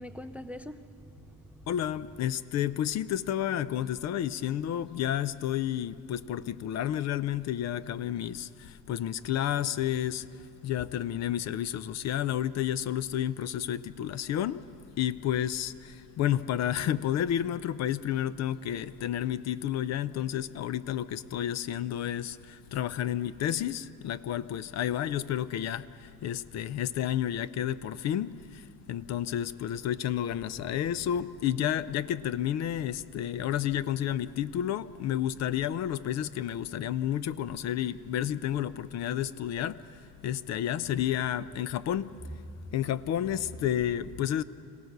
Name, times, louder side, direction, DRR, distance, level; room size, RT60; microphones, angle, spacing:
voice 1, 0.0-1.7 35.6-35.7 42.3-42.7, equal, 5° right, 0.4 m, -43 dB
voice 2, 1.7-14.7 15.0-42.1 42.7-44.4, left 11 dB, 50° left, 0.5 m, -31 dB
26.0 x 17.0 x 6.6 m
cardioid pair, 125°, 35 cm